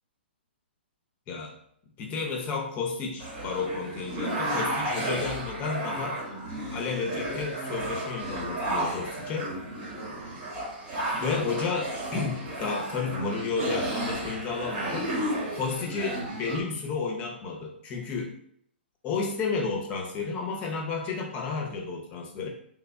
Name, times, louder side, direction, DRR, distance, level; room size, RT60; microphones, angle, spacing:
voice 1, 2.0-6.2 6.7-9.5 11.1-15.1 15.6-18.3 19.0-22.5, left 4 dB, 25° left, 1 dB, 0.6 m, -32 dB
sound 1, 3.2-16.6, right 1 dB, 30° right, 0.9 m, -33 dB
3.3 x 2.2 x 3.6 m, 0.68 s
hypercardioid pair, 145°, 6 cm